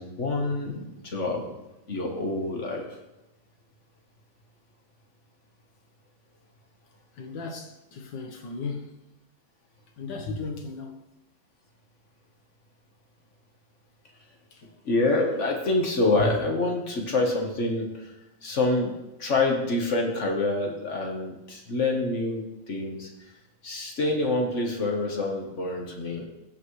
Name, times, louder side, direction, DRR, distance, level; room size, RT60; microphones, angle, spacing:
voice 1, 0.0-1.5 1.9-2.9 14.8-18.1 18.4-18.9 19.2-23.1 23.6-26.3, left 2 dB, 40° left, 1.4 m, -26 dB
voice 2, 7.2-9.1 10.0-11.0 14.5-14.6, left 4 dB, 70° left, 1.8 m, -36 dB
15.5 x 5.9 x 3.2 m
omnidirectional pair, 2.2 m